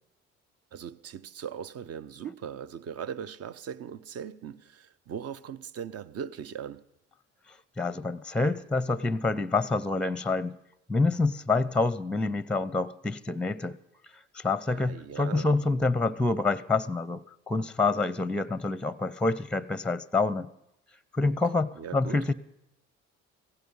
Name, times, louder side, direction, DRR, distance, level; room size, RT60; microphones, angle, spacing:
voice 1, 0.7-6.8 14.7-15.5 21.3-21.4 21.8-22.2, right 8 dB, 50° right, 0.8 m, -39 dB
voice 2, 7.8-10.6 10.9-13.8 14.3-20.5 21.1-22.3, left 3 dB, 5° left, 0.6 m, -27 dB
16.5 x 15.5 x 5.5 m
supercardioid pair, 65°, 30 cm